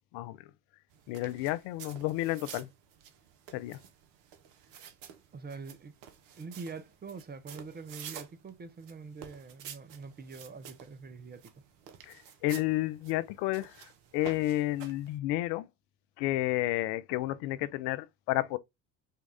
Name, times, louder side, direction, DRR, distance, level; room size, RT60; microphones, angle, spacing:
sound 1, 0.9-15.2, right 9 dB, 55° right, 1.1 m, -50 dB
voice 1, 1.1-2.7 3.5-3.8 12.0-13.8 14.1-15.7 16.2-18.6, left 16 dB, 55° left, 0.6 m, -31 dB
voice 2, 5.3-6.0 6.4-11.6, right 4 dB, 20° right, 0.6 m, -44 dB
5.5 x 2.4 x 3.4 m
hypercardioid pair, 70°, 49 cm